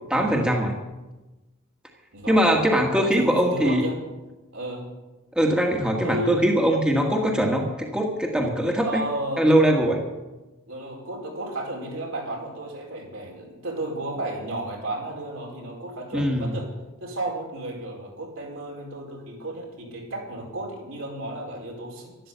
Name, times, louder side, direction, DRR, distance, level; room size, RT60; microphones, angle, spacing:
voice 1, 0.1-0.8 2.3-3.9 5.4-9.0 9.4-10.0 16.1-16.5, equal, 5° right, 0 dB, 1.7 m, -21 dB
voice 2, 2.1-2.7 2.9-4.0 4.5-4.8 6.0-6.5 8.8-9.5 10.7-16.7 17.0-22.3, right 1 dB, 75° right, -1 dB, 4.8 m, -33 dB
12.5 x 12.5 x 8.1 m, 1.1 s
head